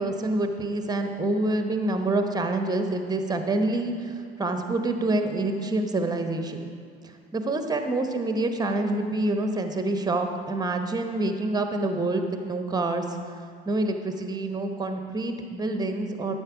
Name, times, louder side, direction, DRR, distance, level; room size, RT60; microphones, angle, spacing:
voice 1, 0.0-6.7 7.3-13.0 13.7-16.4, right 2 dB, 10° right, 6 dB, 0.8 m, -27 dB
12.5 x 4.4 x 5.9 m, 2.4 s
figure-of-eight pair, 60°, 33 cm